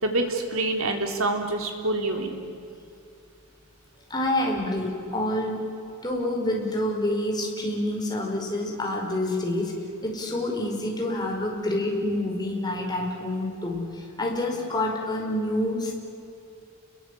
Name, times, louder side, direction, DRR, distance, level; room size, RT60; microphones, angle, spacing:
voice 1, 0.0-2.5, right 2 dB, 70° right, 3 dB, 3.7 m, -26 dB
voice 2, 4.1-5.6 6.0-9.7 10.0-15.9, left 1 dB, 20° left, 0 dB, 5.0 m, -27 dB
29.5 x 22.0 x 8.4 m, 2.6 s
head